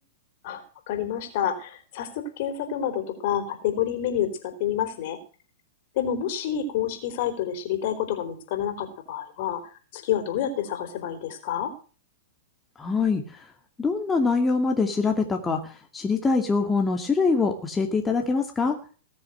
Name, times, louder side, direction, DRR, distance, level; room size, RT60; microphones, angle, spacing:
voice 1, 0.9-4.3 4.6-5.2 6.0-9.6 9.9-11.7, left 9 dB, 50° left, 7 dB, 4.0 m, -28 dB
voice 2, 12.8-13.2 13.8-18.8, left 4 dB, 15° left, 3 dB, 2.4 m, -24 dB
20.0 x 7.2 x 7.8 m, 0.38 s
figure-of-eight pair, 105°, 0 cm